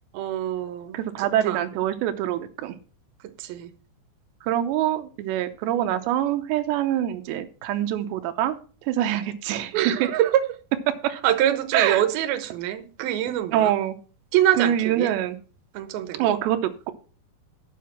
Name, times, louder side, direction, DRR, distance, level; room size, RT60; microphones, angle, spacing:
voice 1, 0.1-1.6 3.2-3.7 9.7-10.4 11.2-13.7 14.3-15.2 15.7-16.4, right 12 dB, 70° right, 9 dB, 2.6 m, -25 dB
voice 2, 0.9-2.8 4.4-8.6 8.8-9.9 11.7-12.0 13.5-14.0 14.6-15.4 16.2-16.9, right 11 dB, 90° right, 7 dB, 3.0 m, -25 dB
9.4 x 7.6 x 5.8 m, 0.39 s
omnidirectional pair, 5.0 m